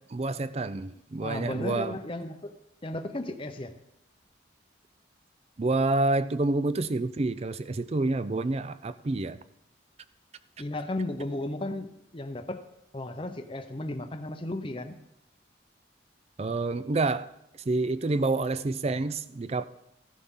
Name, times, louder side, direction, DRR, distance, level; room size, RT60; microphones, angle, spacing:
voice 1, 0.1-2.0 5.6-9.4 16.4-17.3 17.7-19.7, right 2 dB, 35° right, 0.4 m, -28 dB
voice 2, 1.2-2.5 2.8-3.7 10.6-12.6 12.9-15.0, left 1 dB, 25° left, 0.7 m, -34 dB
15.0 x 11.0 x 3.7 m
head